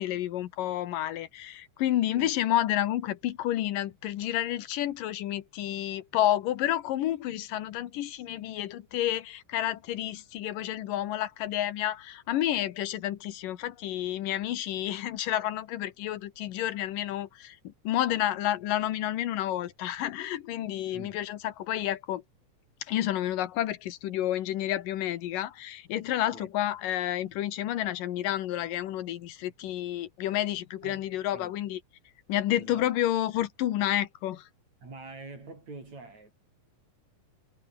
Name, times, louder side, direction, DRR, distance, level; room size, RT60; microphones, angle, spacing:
voice 1, 0.0-17.6 17.8-22.2 22.9-31.8 32.3-34.5, left 13 dB, 85° left, 2.9 m, -30 dB
voice 2, 32.6-32.9 34.8-36.3, right 3 dB, 55° right, 9.1 m, -45 dB
omnidirectional pair, 3.8 m